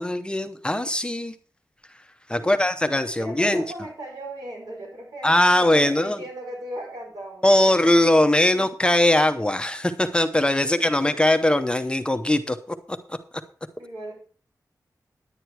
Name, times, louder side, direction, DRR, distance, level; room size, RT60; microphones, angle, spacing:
voice 1, 0.0-1.3 2.3-3.6 5.2-6.2 7.4-12.6 12.9-13.2, left 1 dB, 15° left, 9 dB, 0.6 m, -20 dB
voice 2, 2.4-2.7 3.2-7.6 10.6-11.3 13.8-14.1, right 1 dB, 70° right, -1 dB, 5.4 m, -38 dB
10.5 x 9.6 x 4.6 m, 0.41 s
wide cardioid pair, 115°, 7 cm